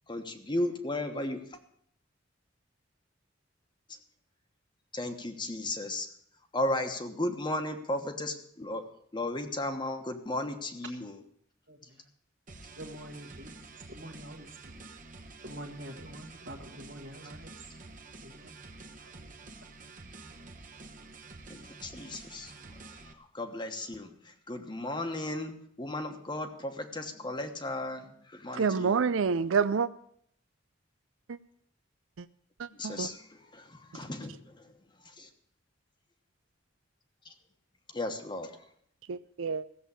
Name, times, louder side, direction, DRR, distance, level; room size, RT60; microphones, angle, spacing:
voice 1, 0.1-1.6 4.9-6.1 6.5-8.9 9.1-11.2 21.5-22.7 23.0-29.0 32.7-34.7 35.0-35.3 37.2-37.3 37.9-38.6, left 1 dB, 25° left, 1.2 m, -35 dB
voice 2, 11.7-12.1 12.8-13.5 13.9-14.5 15.4-17.5 18.2-18.5 19.0-19.1, equal, 60° right, 1.6 m, -45 dB
sound 1, 12.5-23.1, right 3 dB, 45° right, 1.2 m, -49 dB
voice 3, 28.5-29.9 31.3-31.4 32.2-32.3 32.6-33.1 39.1-39.6, right 5 dB, 90° right, 0.5 m, -28 dB
15.5 x 7.4 x 8.4 m
head